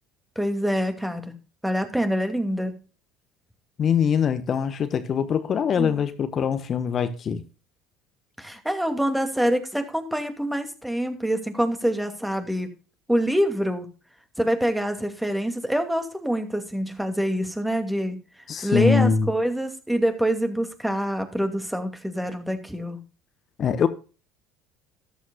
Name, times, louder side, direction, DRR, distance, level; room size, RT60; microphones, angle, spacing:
voice 1, 0.4-1.2 1.6-2.7 5.8-6.0 8.4-12.7 13.1-13.9 14.4-18.2 18.6-23.0, equal, 5° right, 2.5 m, -25 dB
voice 2, 3.8-7.4 18.5-19.3 23.6-23.9, left 7 dB, 40° left, 1.3 m, -23 dB
14.0 x 12.5 x 2.4 m
figure-of-eight pair, 65°, 0 cm